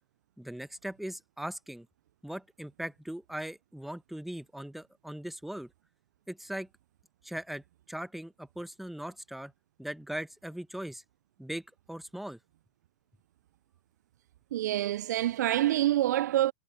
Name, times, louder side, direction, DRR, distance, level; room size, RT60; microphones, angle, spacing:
voice 1, 0.4-1.9 2.2-5.7 6.3-6.7 7.2-9.5 9.8-11.0 11.4-11.6 11.9-12.4, right 1 dB, ahead, 1.3 m, -39 dB
voice 2, 14.5-16.5, right 13 dB, 55° right, 0.5 m, -26 dB
hypercardioid pair, 110°, 11 cm